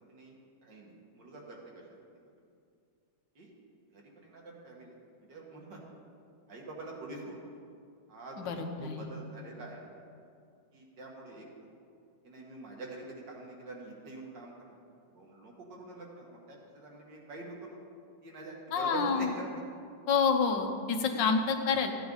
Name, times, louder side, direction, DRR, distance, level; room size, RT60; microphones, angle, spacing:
voice 1, 0.6-1.8 2.2-2.3 3.4-3.5 3.9-4.9 5.3-6.0 6.5-7.5 8.1-10.0 10.7-11.5 12.2-14.8 15.1-17.8 18.2-19.6 21.1-21.3, right 2 dB, 75° right, -2 dB, 2.5 m, -45 dB
voice 2, 8.4-9.1 18.7-19.3 20.1-21.9, left 5 dB, 85° left, 4 dB, 1.7 m, -28 dB
15.0 x 9.2 x 4.0 m, 2.4 s
omnidirectional pair, 1.9 m